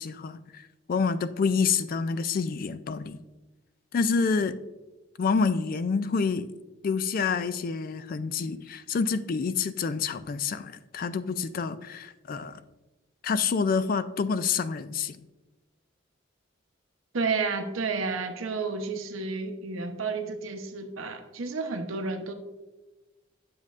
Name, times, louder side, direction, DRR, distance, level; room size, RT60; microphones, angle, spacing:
voice 1, 0.0-3.2 3.9-4.6 5.2-6.5 6.8-12.6 13.2-15.2, left 5 dB, 45° left, 13 dB, 0.3 m, -28 dB
voice 2, 17.1-22.3, right 4 dB, 85° right, 7 dB, 0.7 m, -31 dB
7.7 x 7.4 x 2.4 m, 1.1 s
head